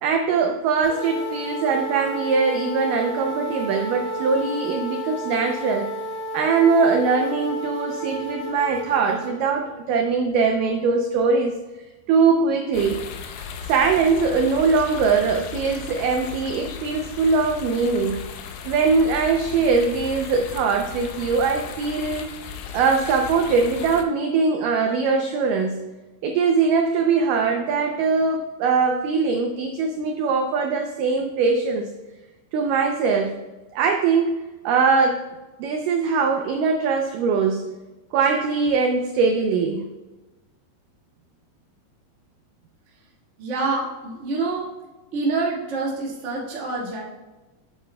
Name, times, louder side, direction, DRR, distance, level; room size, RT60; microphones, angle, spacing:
voice 1, 0.0-5.9 6.3-11.6 12.1-13.0 13.6-18.2 18.7-22.3 22.7-25.8 26.2-31.9 32.5-33.4 33.7-34.4 34.7-35.2 35.6-37.7 38.1-39.8, right 4 dB, 85° right, 4 dB, 1.9 m, -21 dB
sound 1, 0.8-9.3, right 1 dB, 60° left, 4.5 m, -31 dB
sound 2, 12.7-24.0, left 7 dB, 75° left, 2.2 m, -36 dB
voice 2, 43.4-44.7 45.1-47.0, right 3 dB, 45° right, -4 dB, 0.9 m, -26 dB
8.7 x 8.5 x 2.2 m, 1.1 s
omnidirectional pair, 4.5 m